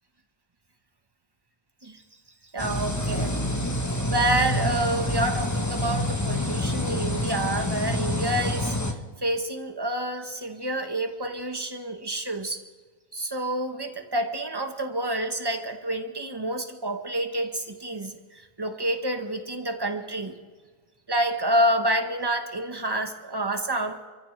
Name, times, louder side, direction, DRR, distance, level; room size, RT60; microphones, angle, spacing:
voice 1, 2.5-3.4 4.1-8.8 9.2-12.6 13.1-20.4 21.1-24.0, right 1 dB, 15° right, 5 dB, 1.1 m, -28 dB
sound 1, 2.6-8.9, left 1 dB, 15° left, 0.9 m, -27 dB
28.5 x 14.5 x 3.4 m, 1.4 s
omnidirectional pair, 1.6 m